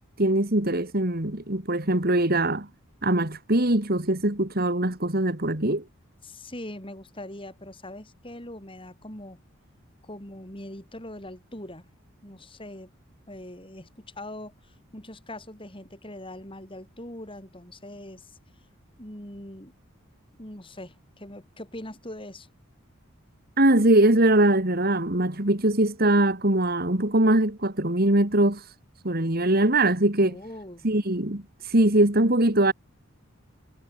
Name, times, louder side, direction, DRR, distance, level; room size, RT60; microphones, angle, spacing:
voice 1, 0.2-2.7 3.0-5.8 23.6-28.6 29.0-30.4 30.8-32.7, right 1 dB, 45° right, 2.5 m, -22 dB
voice 2, 6.2-9.4 10.0-11.9 12.2-12.9 13.3-18.4 19.0-19.7 20.4-22.5 30.2-30.9, left 1 dB, 25° left, 7.0 m, -42 dB
head